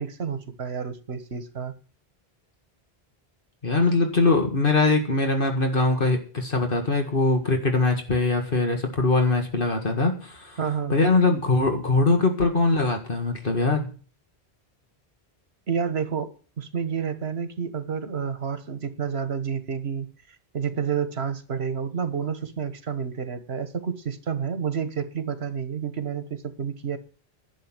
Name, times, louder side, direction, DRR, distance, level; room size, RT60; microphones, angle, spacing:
voice 1, 0.0-1.7 10.6-11.0 15.7-16.3 16.6-20.1 20.5-27.0, right 7 dB, 85° right, 11 dB, 1.6 m, -29 dB
voice 2, 3.6-10.6 10.9-13.9, left 3 dB, 60° left, 4 dB, 2.1 m, -22 dB
11.5 x 7.2 x 8.9 m, 0.38 s
omnidirectional pair, 1.1 m